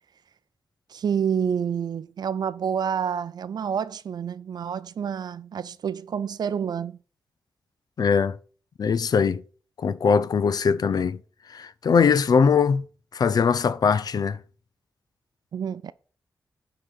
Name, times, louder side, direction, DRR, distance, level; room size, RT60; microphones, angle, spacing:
voice 1, 0.9-7.0 15.5-15.9, right 7 dB, 75° right, 0.4 m, -28 dB
voice 2, 8.0-8.4 8.8-9.4 9.8-11.2 11.5-12.8 13.1-14.4, left 6 dB, 70° left, 0.6 m, -21 dB
10.0 x 3.9 x 6.4 m
wide cardioid pair, 125°, 7 cm